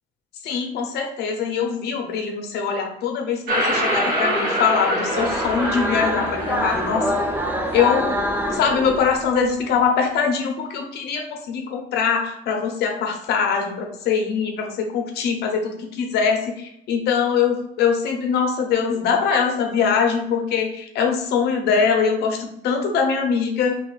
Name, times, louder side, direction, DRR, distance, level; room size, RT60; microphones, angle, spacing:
voice 1, 0.4-7.1 7.7-8.2 8.5-23.7, left 6 dB, 75° left, 3 dB, 0.8 m, -22 dB
sound 1, 3.5-9.0, equal, 60° right, 1.1 m, -25 dB
sound 2, 5.2-9.5, equal, 10° right, 0.4 m, -26 dB
2.9 x 2.5 x 3.8 m, 0.78 s
cardioid pair, 110°, 17 cm